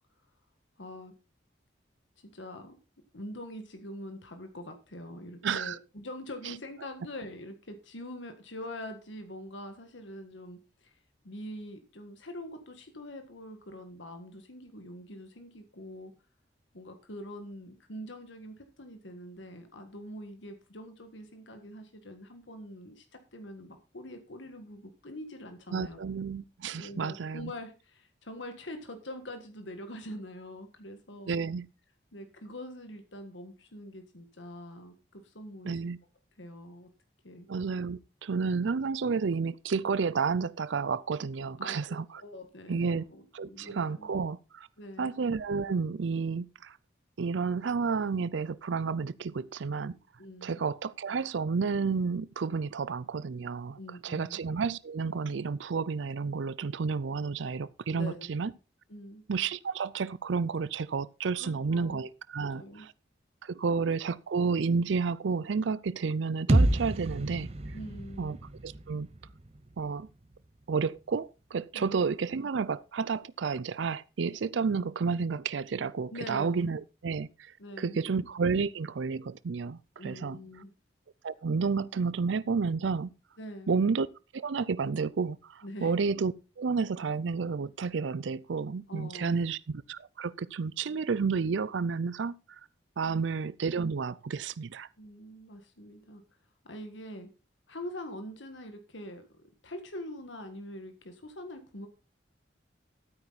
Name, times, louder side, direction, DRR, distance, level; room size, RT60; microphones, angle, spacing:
voice 1, 0.8-1.1 2.2-2.8 3.1-11.0 11.2-16.1 16.7-26.0 26.8-31.4 32.1-35.8 36.4-36.9 37.2-37.5 41.6-44.1 44.8-45.1 50.2-50.6 53.8-54.4 57.9-58.3 58.9-59.2 61.3-62.0 62.4-62.9 63.7-63.8 67.7-68.4 71.7-72.0 76.1-76.7 77.6-78.0 80.0-80.7 83.4-83.8 85.6-85.9 88.9-89.4 95.0-96.2 96.6-97.3 97.7-99.2 99.6-101.9, left 1 dB, 80° left, 1.7 m, -44 dB
voice 2, 5.4-5.8 6.4-6.5 25.7-27.5 31.3-31.7 35.6-36.0 37.5-42.2 42.7-43.0 43.3-44.7 45.0-46.8 47.2-49.9 50.4-58.5 59.3-62.9 63.4-67.5 68.2-68.4 68.6-69.1 69.8-70.1 70.7-77.5 77.8-80.4 81.2-83.1 83.7-84.1 84.3-92.6 93.0-94.9, right 5 dB, 80° right, 0.5 m, -31 dB
sound 1, 66.5-70.4, right 1 dB, 35° right, 0.8 m, -29 dB
13.0 x 9.1 x 4.1 m
head